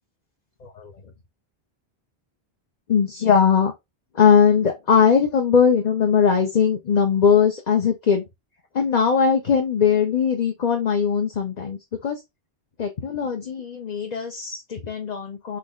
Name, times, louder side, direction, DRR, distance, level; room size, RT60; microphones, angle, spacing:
voice 1, 0.6-0.9 2.9-3.7 4.1-8.2 8.7-12.2 12.8-15.6, left 6 dB, 45° left, 0.9 m, -20 dB
4.3 x 3.0 x 3.8 m
omnidirectional pair, 1.1 m